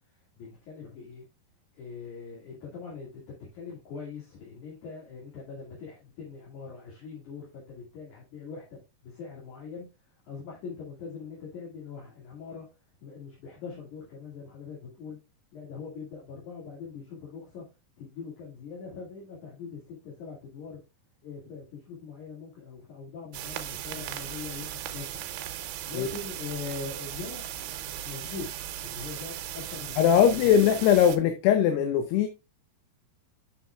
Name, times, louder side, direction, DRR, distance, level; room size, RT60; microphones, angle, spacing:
voice 1, 0.4-1.2 1.7-3.2 3.5-9.9 10.2-12.6 13.0-15.2 15.5-17.6 18.0-20.8 21.2-25.2 25.8-30.5, left 5 dB, 50° left, 3.4 m, -42 dB
sound 1, 23.3-31.2, right 11 dB, 80° right, 2.9 m, -37 dB
voice 2, 30.0-32.3, left 9 dB, 80° left, 2.8 m, -21 dB
7.5 x 7.5 x 2.3 m
omnidirectional pair, 4.8 m